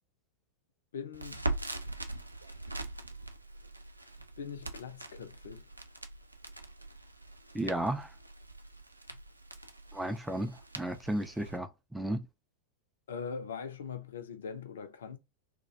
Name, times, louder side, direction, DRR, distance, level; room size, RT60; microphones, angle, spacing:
voice 1, 0.9-1.5 4.4-5.6 13.1-15.2, left 6 dB, 65° left, 0.4 m, -41 dB
Crackle, 1.1-11.6, right 2 dB, 85° right, 0.3 m, -42 dB
voice 2, 7.5-8.1 9.9-12.2, right 1 dB, 5° right, 0.3 m, -34 dB
2.3 x 2.0 x 2.7 m
figure-of-eight pair, 90°, 0 cm